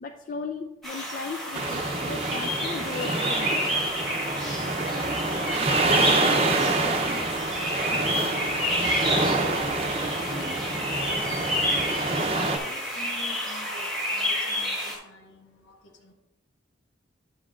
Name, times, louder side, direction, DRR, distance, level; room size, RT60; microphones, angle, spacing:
voice 1, 0.0-3.7, left 4 dB, 40° left, 4 dB, 0.4 m, -36 dB
sound 1, 0.8-15.0, equal, ahead, 1.3 m, -29 dB
sound 2, 1.5-12.6, right 3 dB, 30° right, 0.6 m, -27 dB
voice 2, 4.5-16.1, left 1 dB, 70° left, 2 dB, 1.3 m, -45 dB
8.9 x 7.4 x 2.4 m, 1.0 s
head